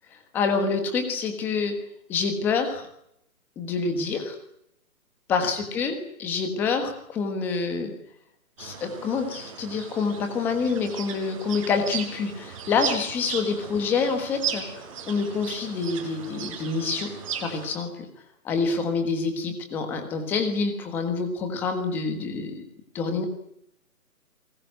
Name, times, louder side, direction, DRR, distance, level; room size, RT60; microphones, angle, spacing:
voice 1, 0.1-1.8 2.1-2.9 3.6-4.3 5.3-7.9 8.6-17.1 17.4-18.1 18.4-22.6 22.9-23.2, left 4 dB, 5° left, 7 dB, 1.4 m, -27 dB
sound 1, 8.6-17.7, right 7 dB, 20° right, 4.5 m, -36 dB
23.0 x 20.0 x 9.4 m, 0.74 s
hypercardioid pair, 175°, 44 cm